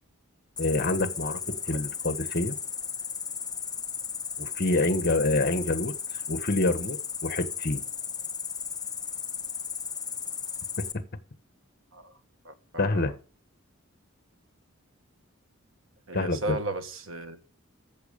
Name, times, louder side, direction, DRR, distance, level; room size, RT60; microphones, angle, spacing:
voice 1, 0.6-2.6 4.4-5.9 6.3-7.8 10.8-10.9 12.8-13.1 16.1-16.6, left 2 dB, 50° left, 1.4 m, -27 dB
Cricket, 0.6-10.9, left 7 dB, 20° left, 0.9 m, -35 dB
voice 2, 12.4-13.1 16.1-17.4, right 1 dB, 75° right, 1.6 m, -35 dB
14.0 x 7.4 x 5.4 m
head